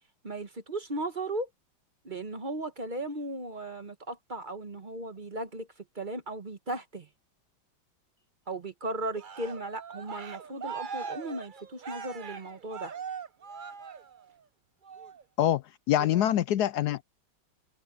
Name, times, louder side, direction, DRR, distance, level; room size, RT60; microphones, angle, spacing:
voice 1, 0.2-1.5 2.0-5.7 5.9-7.1 8.5-12.9 16.0-16.3, right 2 dB, 30° right, 1.2 m, -36 dB
Cheering, 9.1-14.4 14.8-15.2, right 6 dB, 65° right, 0.5 m, -41 dB
voice 2, 15.4-17.0, left 12 dB, 75° left, 0.9 m, -25 dB
open air
omnidirectional pair, 2.1 m